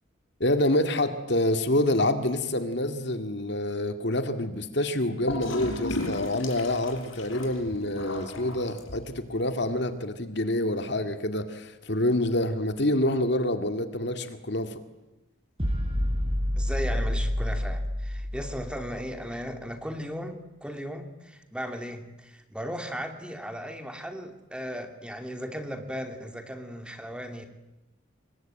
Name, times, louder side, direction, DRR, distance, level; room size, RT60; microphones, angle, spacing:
voice 1, 0.4-14.8, left 1 dB, 55° left, 8 dB, 2.1 m, -27 dB
Gurgling / Toilet flush, 5.3-9.2, left 1 dB, 80° left, 5.4 m, -35 dB
sound 1, 15.6-19.0, left 1 dB, 25° right, 7.3 m, -28 dB
voice 2, 16.5-27.5, equal, 5° right, 6 dB, 2.6 m, -36 dB
27.5 x 23.0 x 9.1 m, 0.97 s
head